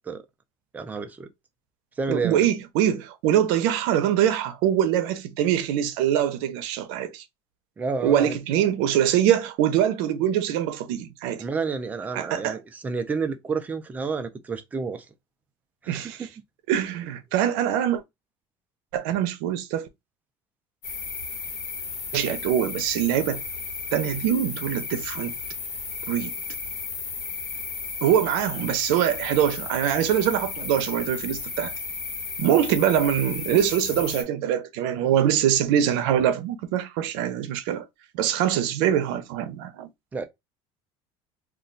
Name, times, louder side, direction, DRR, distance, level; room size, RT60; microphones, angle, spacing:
voice 1, 0.7-1.3 2.0-2.5 7.8-8.3 11.4-15.0 15.8-16.3 40.1-40.2, right 4 dB, 15° right, 0.3 m, -30 dB
voice 2, 2.1-7.2 8.0-11.4 12.1-12.6 15.9-16.3 16.7-18.0 18.9-19.9 22.1-23.4 23.9-25.3 26.1-26.3 28.0-31.7 32.4-37.8 38.1-39.9, right 10 dB, 85° right, 0.6 m, -23 dB
sound 1, 20.8-34.2, left 5 dB, 65° left, 1.2 m, -34 dB
2.4 x 2.2 x 3.7 m
cardioid pair, 165°, 12 cm